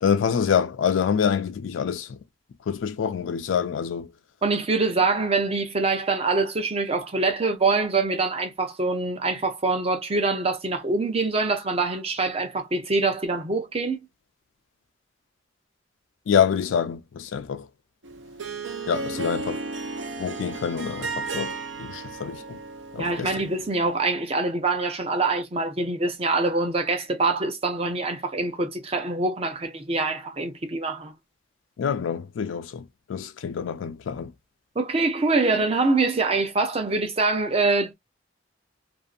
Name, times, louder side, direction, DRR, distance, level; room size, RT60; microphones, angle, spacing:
voice 1, 0.0-2.2 2.7-4.1 16.3-17.7 18.9-19.6 20.2-22.6 22.9-23.4 31.8-34.3, left 7 dB, 90° left, 0.4 m, -26 dB
voice 2, 4.4-14.0 23.0-31.1 34.8-37.9, right 3 dB, 30° right, 0.6 m, -24 dB
Harp, 18.0-23.8, right 3 dB, 70° right, 0.6 m, -34 dB
2.6 x 2.4 x 2.4 m
head